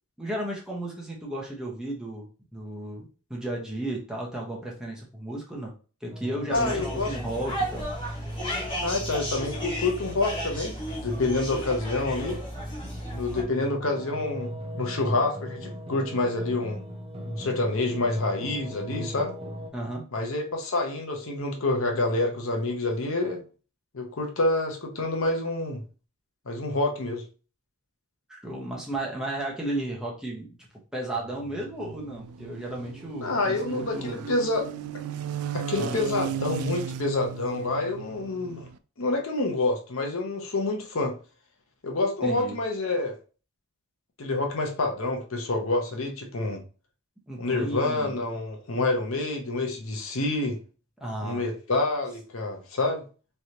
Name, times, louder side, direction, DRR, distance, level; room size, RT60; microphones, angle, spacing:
voice 1, 0.2-5.7 6.0-8.2 19.7-20.1 28.3-30.6 30.9-34.2 35.7-36.0 42.2-42.6 47.3-48.2 48.7-48.9 51.0-51.5, right 1 dB, 5° right, 0.9 m, -34 dB
sound 1, 6.1-19.7, equal, 25° right, 0.6 m, -39 dB
voice 2, 6.5-7.1 8.8-12.4 13.1-16.8 17.2-19.3 20.1-23.4 23.9-25.8 26.5-27.2 33.2-34.7 35.5-38.7 39.0-41.1 41.8-43.1 44.2-46.6 47.4-50.6 51.2-53.0, left 2 dB, 65° left, 0.8 m, -27 dB
sound 2, 6.5-13.4, equal, 20° left, 1.4 m, -34 dB
sound 3, 31.1-38.8, right 7 dB, 80° right, 0.3 m, -36 dB
3.8 x 3.3 x 2.8 m
head